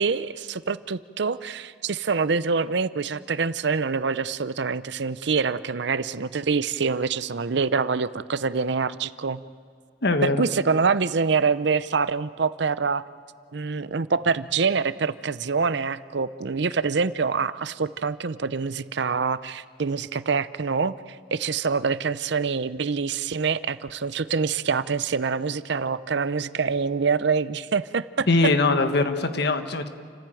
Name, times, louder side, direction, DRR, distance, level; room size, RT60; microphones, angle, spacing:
voice 1, 0.0-9.4 10.2-13.0 13.5-28.3, right 5 dB, 65° right, 15 dB, 0.6 m, -25 dB
voice 2, 10.0-10.5 28.3-29.9, left 3 dB, 60° left, 8 dB, 1.5 m, -22 dB
29.5 x 15.0 x 9.1 m, 2.2 s
head